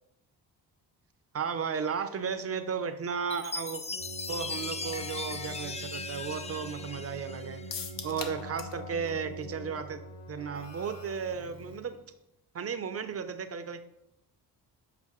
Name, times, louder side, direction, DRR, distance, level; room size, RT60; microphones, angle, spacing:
voice 1, 1.3-3.8 4.3-7.6 8.0-10.0 10.3-12.0 12.5-13.8, right 6 dB, 40° right, 10 dB, 0.7 m, -34 dB
Chime, 3.3-7.9, left 3 dB, 15° left, 0.5 m, -39 dB
Keyboard (musical), 3.9-12.0, equal, 40° left, 1.7 m, -44 dB
sound 1, 7.7-8.8 9.1-9.2 9.5-9.6, left 6 dB, 60° left, 0.9 m, -39 dB
7.8 x 5.0 x 3.1 m, 0.82 s
cardioid pair, 90°, 38 cm